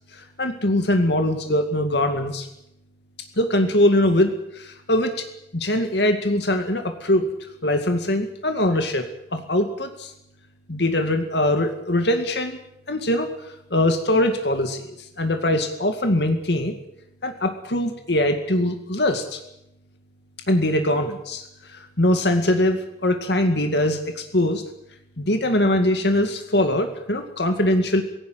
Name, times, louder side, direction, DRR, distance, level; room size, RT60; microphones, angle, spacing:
voice 1, 0.1-2.5 3.4-5.3 5.5-7.3 7.6-9.1 9.3-10.1 10.7-12.6 12.9-13.3 13.7-16.8 17.2-19.4 20.5-21.4 21.7-24.6 25.2-28.0, left 1 dB, 80° left, 5 dB, 2.2 m, -22 dB
18.0 x 17.0 x 9.4 m, 0.82 s
head